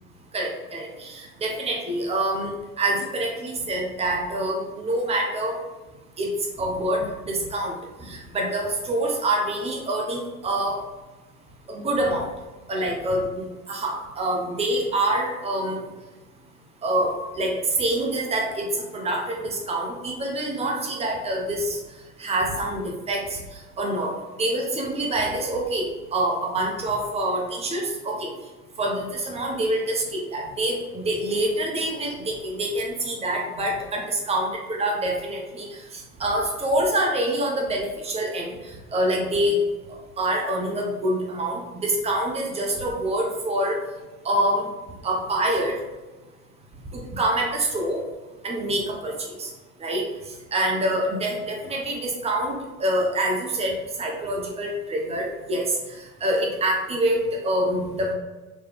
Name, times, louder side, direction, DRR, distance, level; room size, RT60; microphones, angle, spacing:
voice 1, 0.3-5.6 6.2-10.8 11.7-12.3 12.7-15.9 16.8-21.8 22.2-28.3 28.8-39.7 40.2-43.8 44.2-44.7 45.0-45.8 46.9-48.0 48.4-49.5 49.8-50.1 50.5-58.1, right 1 dB, 15° right, 0 dB, 0.5 m, -26 dB
3.2 x 3.0 x 3.4 m, 1.2 s
figure-of-eight pair, 85°, 45 cm